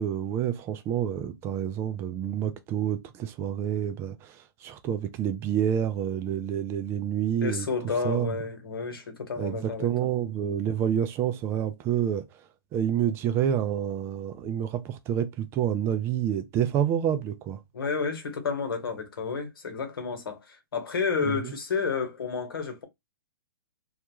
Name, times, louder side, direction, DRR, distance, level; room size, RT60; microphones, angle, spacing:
voice 1, 0.0-7.7 8.0-8.4 9.4-12.4 12.7-17.6 21.3-21.5, right 9 dB, 20° right, 0.3 m, -28 dB
voice 2, 7.4-9.9 17.7-22.8, left 5 dB, 80° left, 1.0 m, -31 dB
2.3 x 2.2 x 2.9 m
hypercardioid pair, 140°, 12 cm